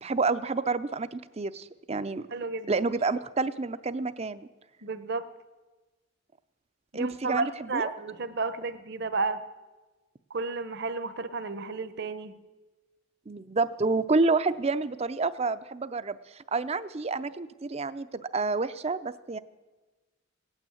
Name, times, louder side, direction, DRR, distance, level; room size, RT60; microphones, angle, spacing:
voice 1, 0.0-2.3 2.7-4.5 6.9-7.9 13.3-19.4, right 3 dB, 30° right, 13 dB, 0.5 m, -29 dB
voice 2, 2.3-2.8 4.8-5.3 6.9-9.4 10.3-12.3, right 3 dB, 55° right, 11 dB, 0.9 m, -32 dB
17.5 x 9.1 x 8.5 m, 1.2 s
head